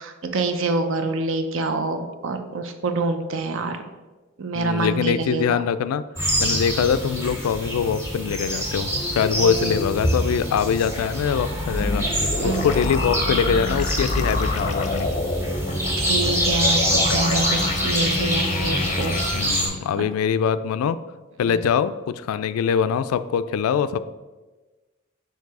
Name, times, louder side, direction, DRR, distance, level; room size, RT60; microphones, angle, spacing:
voice 1, 0.0-3.8 4.4-5.6 12.4-12.7 16.0-19.2 19.5-20.0 21.5-21.6, right 3 dB, 65° right, 7 dB, 0.5 m, -26 dB
voice 2, 4.5-6.0 6.4-12.0 12.4-15.1 19.3-21.0 21.4-24.0, left 7 dB, 80° left, 14 dB, 0.3 m, -23 dB
sound 1, 6.2-19.7, equal, 15° right, 1.7 m, -26 dB
sound 2, 11.5-19.7, left 2 dB, 35° left, 0.5 m, -27 dB
4.7 x 4.6 x 4.7 m, 1.2 s
head